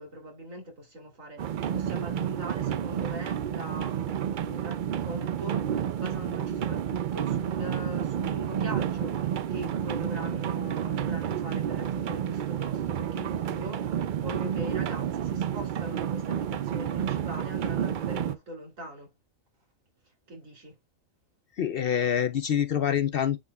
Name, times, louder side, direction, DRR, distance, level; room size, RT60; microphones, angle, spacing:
voice 1, 0.0-19.1 20.3-20.8, equal, 85° right, 3.3 m, -41 dB
sound 1, 1.4-18.3, right 9 dB, 65° right, 0.5 m, -30 dB
voice 2, 21.6-23.4, left 9 dB, 60° left, 0.7 m, -26 dB
9.6 x 4.7 x 2.2 m
omnidirectional pair, 1.3 m